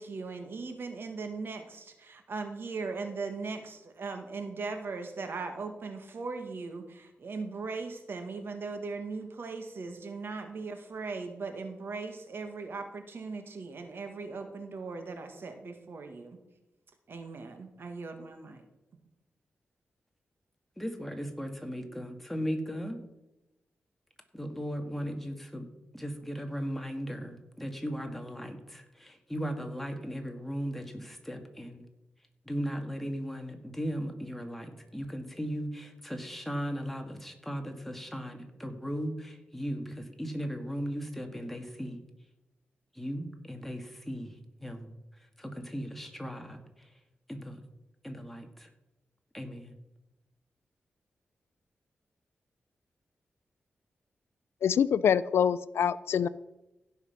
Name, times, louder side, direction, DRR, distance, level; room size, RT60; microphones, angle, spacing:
voice 1, 0.0-16.4 17.1-18.6, right 4 dB, 65° right, 6 dB, 1.8 m, -39 dB
voice 2, 20.8-23.0 24.3-25.7 25.9-31.8 32.5-42.0 43.0-44.3 44.6-44.9 45.4-46.6 47.3-47.6 48.0-48.7 49.3-49.7, equal, 5° left, 4 dB, 1.8 m, -37 dB
voice 3, 54.6-56.3, left 8 dB, 90° left, 18 dB, 0.4 m, -25 dB
16.0 x 5.7 x 5.7 m, 0.96 s
cardioid pair, 80°, 4 cm